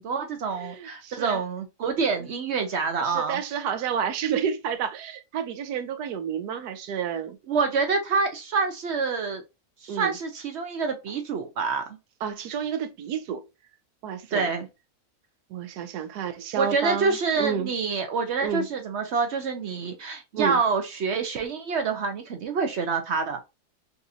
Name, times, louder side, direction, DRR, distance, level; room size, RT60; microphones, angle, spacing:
voice 1, 0.0-3.4 7.5-9.4 9.8-12.0 14.3-14.7 16.6-23.4, right 4 dB, 60° right, 0.7 m, -27 dB
voice 2, 0.6-1.4 2.2-2.4 3.0-7.4 9.9-10.1 12.2-13.4 14.0-14.5 15.5-17.7 18.4-18.7 20.3-20.6, right 7 dB, 90° right, 1.2 m, -30 dB
4.0 x 2.5 x 2.6 m
omnidirectional pair, 1.6 m